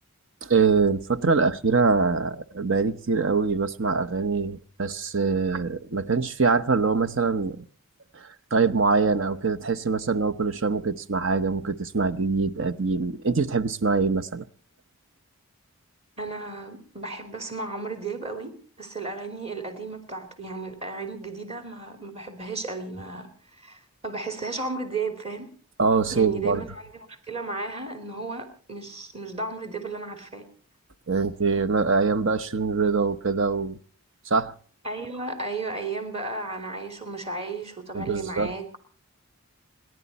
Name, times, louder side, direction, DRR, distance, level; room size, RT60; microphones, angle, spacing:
voice 1, 0.4-7.6 8.1-14.4 25.8-26.6 31.1-33.8 34.3-34.5 37.9-38.5, right 4 dB, 55° right, 0.9 m, -24 dB
voice 2, 16.2-18.5 18.8-23.3 23.6-25.5 26.1-30.5 34.8-38.8, right 3 dB, 30° right, 3.0 m, -34 dB
29.5 x 11.0 x 4.2 m
head